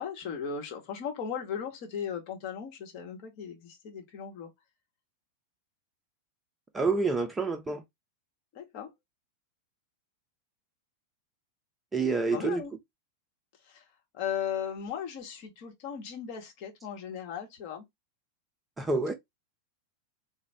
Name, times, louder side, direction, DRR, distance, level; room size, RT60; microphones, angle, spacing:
voice 1, 0.0-4.5 8.5-8.9 12.3-12.7 13.7-13.8 14.1-17.8, left 7 dB, 45° left, 1.1 m, -37 dB
voice 2, 6.7-7.8 11.9-12.6 18.8-19.1, right 4 dB, 15° right, 0.6 m, -28 dB
4.1 x 2.2 x 3.3 m
figure-of-eight pair, 90°, 0 cm